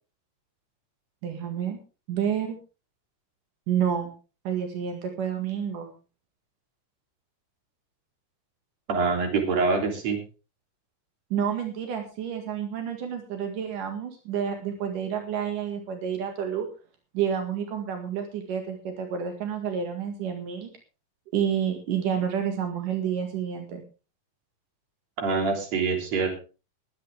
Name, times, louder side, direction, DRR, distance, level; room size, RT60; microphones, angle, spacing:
voice 1, 1.2-1.8 2.1-2.6 3.7-4.1 4.5-5.9 11.3-16.7 17.1-20.7 21.3-23.8, right 8 dB, 85° right, 4 dB, 3.6 m, -29 dB
voice 2, 8.9-10.2 25.2-26.3, right 4 dB, 55° right, 3 dB, 4.5 m, -25 dB
21.5 x 9.6 x 3.5 m, 0.33 s
omnidirectional pair, 3.6 m